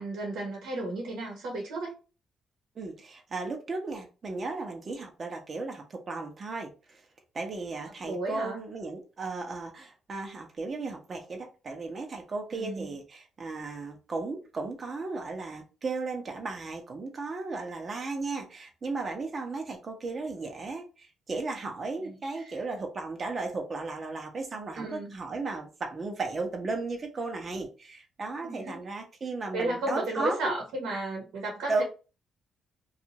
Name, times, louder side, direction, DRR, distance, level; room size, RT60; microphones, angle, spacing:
voice 1, 0.0-1.9 8.0-8.6 12.5-12.9 22.0-22.6 24.7-25.1 28.4-28.8 29.5-31.8, right 2 dB, 85° right, 1.0 m, -33 dB
voice 2, 2.8-7.0 7.3-30.5 31.7-31.8, right 3 dB, 40° right, 0.8 m, -35 dB
2.6 x 2.4 x 2.9 m
cardioid pair, 90°, 0 cm